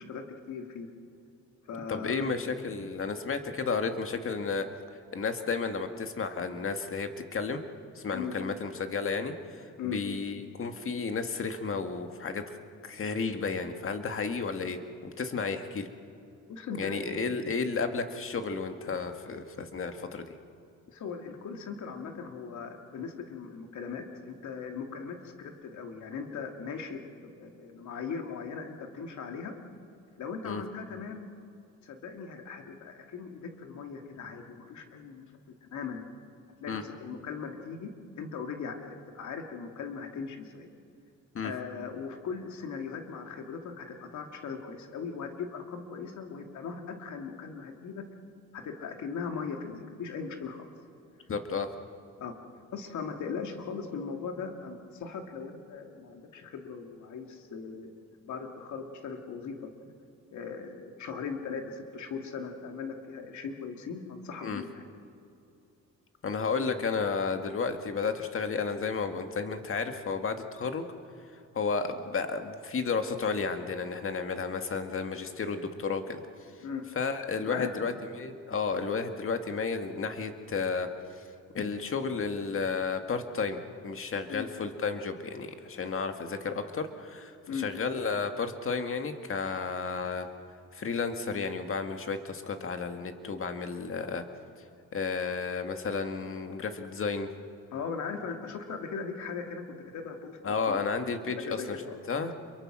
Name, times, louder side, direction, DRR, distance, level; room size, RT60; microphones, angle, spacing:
voice 1, 0.1-0.9 1.7-2.2 8.1-8.3 9.8-10.0 16.5-17.2 20.9-29.5 30.2-31.3 31.8-35.2 35.6-36.0 36.6-37.9 38.2-40.7 41.4-48.0 48.5-50.7 52.2-52.4 52.7-57.9 58.2-59.9 60.3-64.8 76.6-76.8 77.4-77.7 84.3-84.5 87.5-87.7 97.7-99.6 99.9-100.8 101.4-102.0, left 5 dB, 70° left, 4 dB, 2.6 m, -39 dB
voice 2, 1.9-4.7 5.1-7.6 8.0-12.6 12.8-15.9 16.8-20.3 30.4-30.6 36.7-36.8 41.3-41.5 51.3-51.7 64.4-64.6 66.2-70.9 71.5-76.2 77.0-81.2 81.5-90.3 90.7-94.2 94.9-97.3 100.4-101.8 102.1-102.3, left 5 dB, 45° left, 6 dB, 2.0 m, -32 dB
27.5 x 23.0 x 6.3 m, 2.6 s
cardioid pair, 90°, 30 cm